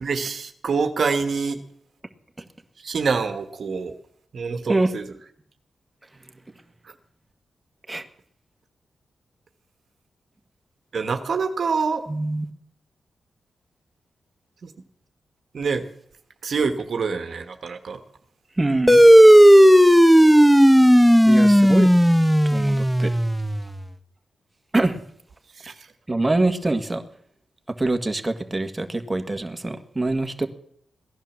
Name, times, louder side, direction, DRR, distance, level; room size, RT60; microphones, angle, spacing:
voice 1, 0.0-1.6 2.8-3.9 4.3-5.0 6.8-6.9 10.9-12.0 14.6-14.7 15.5-15.9 16.4-18.0 25.5-25.9, right 5 dB, 60° right, 8 dB, 1.4 m, -26 dB
voice 2, 12.1-12.5 18.6-19.1 21.3-21.9 22.5-23.1 24.7-25.0 26.1-27.0 27.8-30.5, right 2 dB, 15° right, 5 dB, 1.8 m, -24 dB
sound 1, 18.9-23.7, equal, ahead, 1.0 m, -13 dB
16.5 x 11.0 x 7.3 m, 0.66 s
cardioid pair, 75°, 0 cm